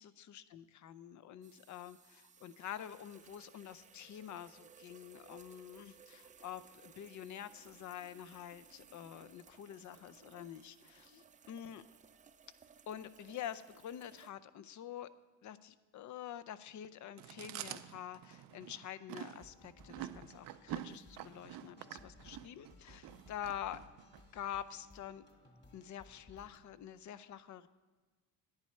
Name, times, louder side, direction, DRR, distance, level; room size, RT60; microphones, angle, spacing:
voice 1, 0.0-11.8 12.9-15.1 15.4-23.8 24.3-25.3 25.7-27.7, left 10 dB, 55° left, 14 dB, 0.6 m, -47 dB
sound 1, 1.4-14.3, right 7 dB, 20° right, 0.4 m, -61 dB
Chewing mastication, 17.2-24.2, right 13 dB, 70° right, 0.6 m, -47 dB
sound 2, 19.4-26.6, left 3 dB, 30° left, 1.9 m, -61 dB
10.5 x 10.0 x 4.4 m, 1.3 s
cardioid pair, 115°, 36 cm